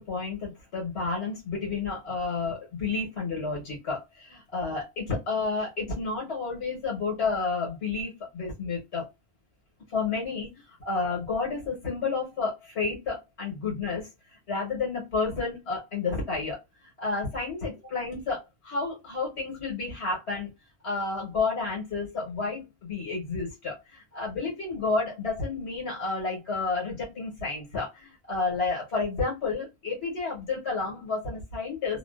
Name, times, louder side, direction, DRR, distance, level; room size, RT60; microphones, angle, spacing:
voice 1, 0.0-9.1 9.9-20.5 20.8-32.0, left 4 dB, 75° left, -3 dB, 1.4 m, -31 dB
2.7 x 2.3 x 2.3 m, 0.22 s
omnidirectional pair, 1.1 m